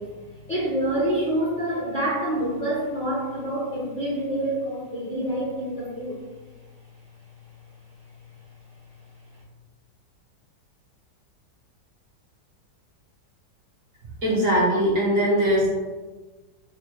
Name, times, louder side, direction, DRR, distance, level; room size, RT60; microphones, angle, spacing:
voice 1, 0.0-6.2, right 1 dB, 35° left, -9 dB, 0.8 m, -27 dB
voice 2, 14.2-15.7, equal, 55° right, -5 dB, 1.1 m, -21 dB
4.2 x 2.2 x 3.1 m, 1.3 s
omnidirectional pair, 1.9 m